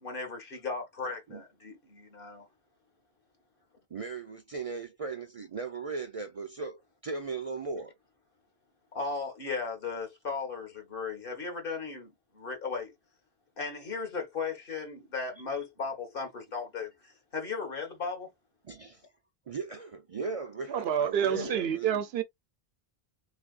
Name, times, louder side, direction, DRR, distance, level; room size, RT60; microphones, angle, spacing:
voice 1, 0.0-2.4 8.9-12.9 13.6-18.3 21.3-21.6, left 4 dB, 60° left, 1.4 m, -36 dB
voice 2, 3.9-7.9 15.5-15.6 18.6-19.0 19.5-22.0, right 4 dB, 45° right, 0.5 m, -38 dB
voice 3, 20.7-22.2, right 9 dB, 75° right, 0.8 m, -28 dB
3.4 x 3.2 x 2.4 m
omnidirectional pair, 1.1 m